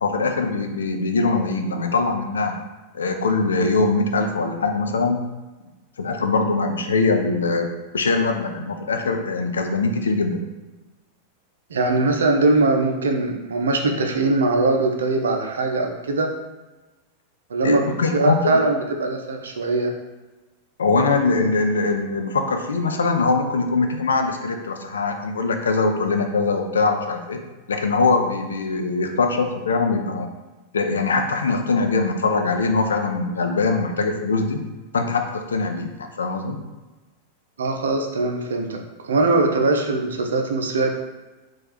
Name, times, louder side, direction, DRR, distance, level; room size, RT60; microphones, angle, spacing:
voice 1, 0.0-2.6 2.9-5.2 6.0-10.4 17.6-18.6 20.8-27.4 27.7-30.3 30.7-34.6 34.9-36.6, left 3 dB, 70° left, 5 dB, 0.5 m, -22 dB
voice 2, 11.7-16.3 17.5-19.9 37.6-41.0, right 2 dB, 65° right, 3 dB, 0.6 m, -21 dB
4.2 x 2.5 x 4.0 m, 1.2 s
figure-of-eight pair, 90°, 0 cm